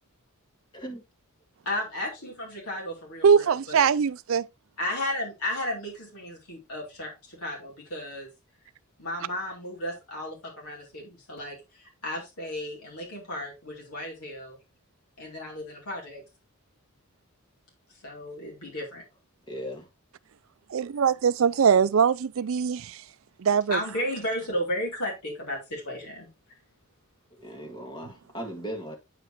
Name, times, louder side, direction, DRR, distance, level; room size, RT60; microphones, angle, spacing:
voice 1, 1.6-3.9 4.8-8.3 9.0-14.6 15.2-16.2 18.0-19.0 23.7-26.3, left 1 dB, 85° left, 2.8 m, -34 dB
voice 2, 3.2-4.4 20.7-23.0 23.4-23.8, right 6 dB, 65° right, 0.4 m, -22 dB
voice 3, 19.5-19.9 27.3-29.0, equal, 20° left, 1.8 m, -37 dB
8.9 x 5.0 x 3.0 m
head